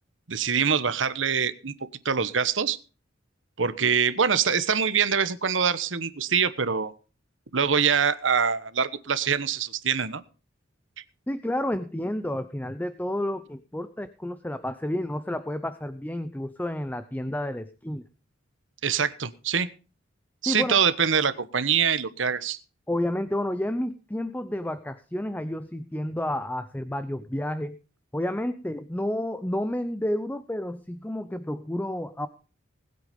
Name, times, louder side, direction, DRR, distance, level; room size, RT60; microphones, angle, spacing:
voice 1, 0.3-1.7 2.0-2.8 3.6-6.9 7.5-10.2 18.8-19.7 20.4-22.6, right 6 dB, 75° right, 14 dB, 1.2 m, -24 dB
voice 2, 11.3-18.0 20.5-20.8 22.9-27.8 28.1-32.3, left 1 dB, 10° left, 12 dB, 0.7 m, -30 dB
20.0 x 8.2 x 5.2 m, 0.36 s
head